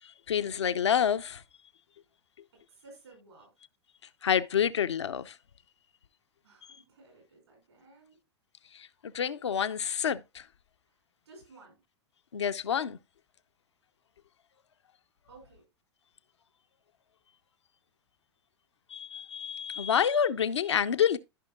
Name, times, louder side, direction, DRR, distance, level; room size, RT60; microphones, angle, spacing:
voice 1, 0.3-1.4 4.2-5.3 9.0-10.4 12.3-13.0 18.9-21.2, left 8 dB, 80° left, 0.6 m, -28 dB
voice 2, 2.5-3.7 6.4-8.2 10.8-11.0 11.2-11.8 15.3-15.7, right 3 dB, 80° right, 5.9 m, -56 dB
14.5 x 5.6 x 2.3 m
figure-of-eight pair, 95°, 14 cm